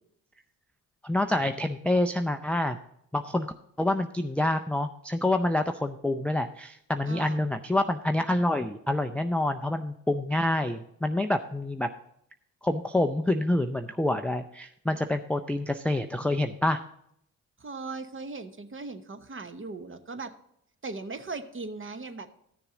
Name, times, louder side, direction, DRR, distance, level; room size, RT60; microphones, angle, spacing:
voice 1, 1.0-2.8 3.1-11.9 12.6-16.8, left 1 dB, 5° left, 8 dB, 0.4 m, -27 dB
voice 2, 7.1-7.4 17.6-20.3 20.8-22.4, right 3 dB, 30° right, 9 dB, 1.0 m, -38 dB
13.0 x 6.8 x 3.7 m, 0.73 s
hypercardioid pair, 50°, 43 cm